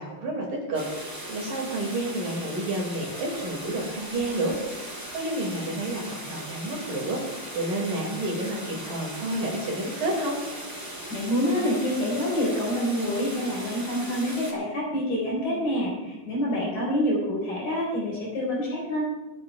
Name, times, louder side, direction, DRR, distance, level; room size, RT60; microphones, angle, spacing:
voice 1, 0.0-10.4, right 1 dB, 55° right, -1 dB, 3.4 m, -30 dB
sound 1, 0.7-14.5, right 1 dB, 5° right, 1.9 m, -38 dB
voice 2, 11.1-19.0, equal, 50° left, -4 dB, 5.4 m, -27 dB
27.5 x 10.0 x 2.3 m, 1.1 s
omnidirectional pair, 5.4 m